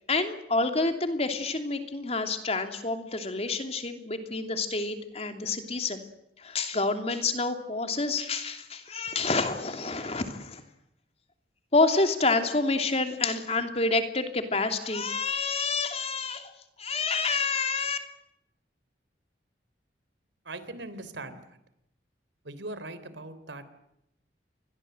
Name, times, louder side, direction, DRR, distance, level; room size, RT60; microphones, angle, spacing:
voice 1, 0.1-6.1 6.4-10.6 11.7-16.5 16.8-18.0, left 3 dB, 35° left, 7 dB, 3.0 m, -28 dB
voice 2, 20.4-21.5 22.4-23.7, right 2 dB, 90° right, 13 dB, 3.4 m, -40 dB
28.5 x 22.5 x 7.9 m, 0.81 s
head